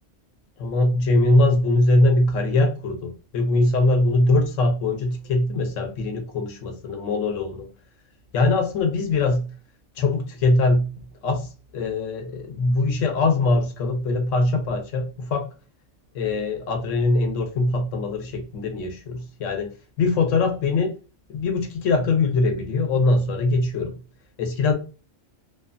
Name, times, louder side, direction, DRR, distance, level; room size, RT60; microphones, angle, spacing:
voice 1, 0.6-7.7 8.3-9.5 10.0-10.9 11.2-15.5 16.1-20.9 21.3-24.0 24.4-24.7, left 2 dB, 75° left, 1.0 m, -22 dB
2.5 x 2.2 x 2.4 m
omnidirectional pair, 1.3 m